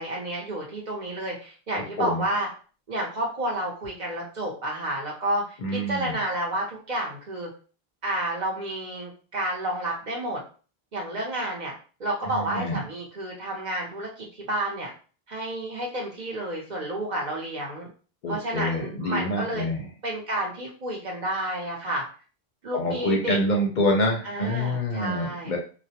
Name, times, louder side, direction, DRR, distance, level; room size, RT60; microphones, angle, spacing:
voice 1, 0.0-2.5 2.9-7.5 8.0-10.4 10.9-11.7 12.0-14.9 15.3-17.9 18.3-19.7 20.0-22.0 22.6-23.4 24.2-25.5, right 1 dB, 50° right, -2 dB, 0.7 m, -30 dB
voice 2, 5.6-6.1 12.2-12.8 18.2-19.8 22.7-25.6, left 1 dB, 55° left, 0 dB, 0.6 m, -26 dB
2.4 x 2.0 x 2.7 m, 0.38 s
omnidirectional pair, 1.0 m